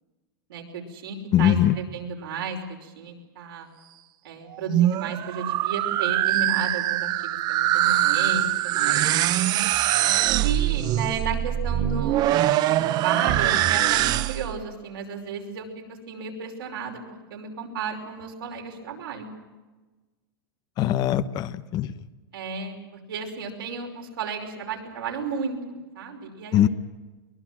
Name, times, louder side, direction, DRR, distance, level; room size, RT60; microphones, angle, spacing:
voice 1, 0.5-3.7 4.2-9.0 10.4-17.0 17.3-19.3 22.3-22.7 23.1-25.6 25.9-26.7, right 5 dB, 80° right, 2 dB, 5.5 m, -33 dB
voice 2, 1.3-1.7 20.8-21.9 26.5-26.7, left 11 dB, 35° left, 14 dB, 0.9 m, -21 dB
sound 1, 4.5-14.6, right 13 dB, 35° right, 0.8 m, -23 dB
23.0 x 20.5 x 7.6 m, 1.2 s
hypercardioid pair, 135°, 12 cm